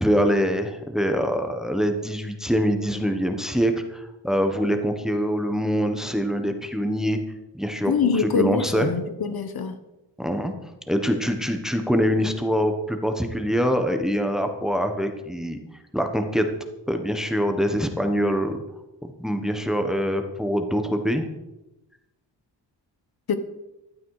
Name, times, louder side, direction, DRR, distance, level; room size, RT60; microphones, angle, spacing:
voice 1, 0.0-7.2 7.5-8.9 10.2-10.5 10.9-15.6 15.9-16.5 16.9-18.6 19.0-21.3, equal, ahead, 6 dB, 1.2 m, -24 dB
voice 2, 7.9-9.8 23.3-23.4, left 5 dB, 55° left, 10 dB, 1.2 m, -24 dB
15.5 x 11.5 x 4.9 m, 0.97 s
wide cardioid pair, 155°, 43 cm